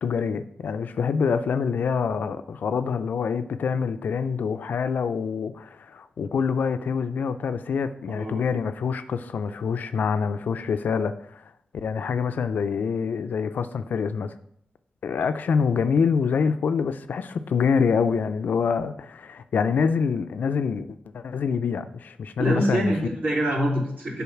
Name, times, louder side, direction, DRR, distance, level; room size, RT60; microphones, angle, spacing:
voice 1, 0.0-11.4 11.7-14.3 15.0-22.9, left 6 dB, 75° left, 0.4 m, -26 dB
voice 2, 22.4-24.2, right 1 dB, 65° right, 3.1 m, -25 dB
7.1 x 4.2 x 5.8 m
cardioid pair, 55°, 3 cm